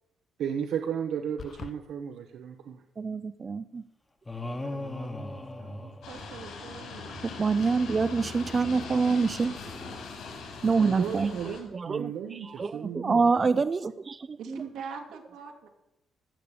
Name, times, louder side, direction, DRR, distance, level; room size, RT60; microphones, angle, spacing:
voice 1, 0.4-2.8 8.5-8.6 9.0-9.3 10.7-13.2, right 8 dB, 65° right, 7 dB, 0.9 m, -34 dB
sound 1, 1.4-1.8, left 6 dB, 35° left, 0.5 m, -41 dB
voice 2, 3.0-3.8 7.2-9.9 10.6-11.3 11.7-14.6, right 4 dB, 25° right, 13 dB, 0.4 m, -27 dB
sound 2, 4.3-6.8, left 1 dB, 15° left, 1.1 m, -37 dB
voice 3, 4.5-7.2 14.4-15.7, right 6 dB, 90° right, 3 dB, 2.6 m, -44 dB
sound 3, 6.0-11.6, left 4 dB, 75° left, 5.0 m, -41 dB
15.0 x 6.7 x 8.8 m, 0.88 s
cardioid pair, 150°, 0 cm